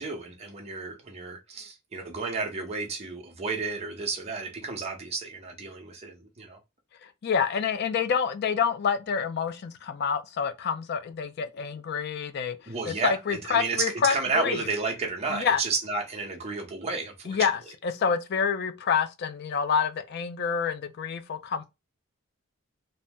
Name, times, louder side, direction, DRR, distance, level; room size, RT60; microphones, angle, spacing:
voice 1, 0.0-6.6 12.7-17.4, right 4 dB, 30° right, 0.7 m, -32 dB
voice 2, 7.0-14.6 15.3-15.6 17.3-21.6, left 6 dB, 50° left, 0.4 m, -28 dB
2.7 x 2.0 x 3.4 m
head